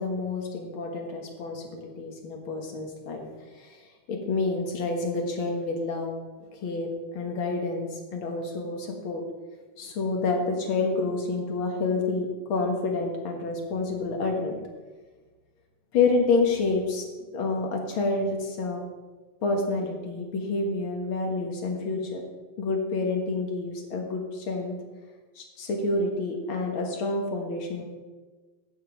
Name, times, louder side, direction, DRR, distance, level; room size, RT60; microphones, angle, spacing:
voice 1, 0.0-3.2 4.1-6.2 6.6-9.2 9.8-14.6 15.9-17.0 17.3-18.8 19.4-22.2 22.6-24.7 25.4-27.8, left 3 dB, 55° left, 2 dB, 1.6 m, -28 dB
15.5 x 5.3 x 5.2 m, 1.3 s
omnidirectional pair, 3.9 m